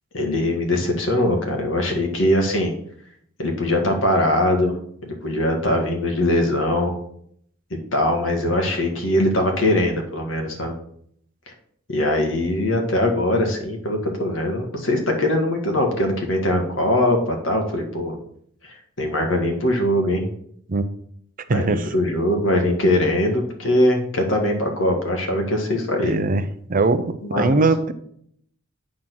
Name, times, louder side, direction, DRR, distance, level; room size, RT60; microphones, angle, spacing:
voice 1, 0.1-2.7 3.4-4.8 5.0-6.9 7.9-10.8 11.9-18.2 18.6-20.3 21.5-26.2 27.2-27.6, left 1 dB, 70° left, 2 dB, 1.7 m, -21 dB
voice 2, 21.5-21.8 26.0-26.4 26.7-27.9, right 3 dB, 45° right, 11 dB, 0.6 m, -20 dB
8.8 x 3.8 x 6.1 m, 0.66 s
head